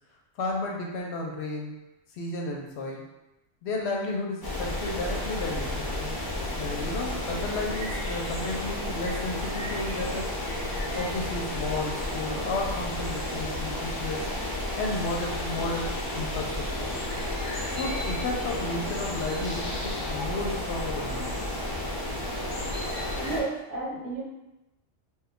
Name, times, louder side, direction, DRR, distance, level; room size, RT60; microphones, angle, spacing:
voice 1, 0.4-1.8 2.1-3.1 3.6-5.9 6.6-10.3 10.9-14.3 14.8-16.9 17.7-21.5, left 2 dB, 65° left, 0 dB, 0.8 m, -33 dB
sound 1, 4.4-23.4, left 1 dB, 25° left, 0.5 m, -32 dB
voice 2, 23.2-24.2, right 3 dB, 75° right, -5 dB, 1.2 m, -32 dB
2.9 x 2.2 x 3.5 m, 0.94 s
omnidirectional pair, 1.2 m